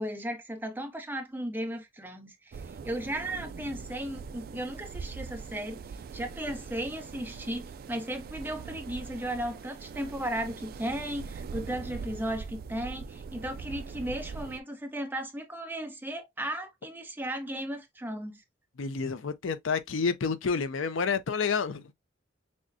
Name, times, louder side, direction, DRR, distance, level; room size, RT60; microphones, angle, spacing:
voice 1, 0.0-18.4, right 1 dB, 10° right, 0.8 m, -35 dB
sound 1, 2.5-14.6, right 5 dB, 50° right, 0.3 m, -42 dB
voice 2, 18.8-21.9, left 5 dB, 85° left, 0.5 m, -29 dB
6.1 x 2.2 x 2.6 m
head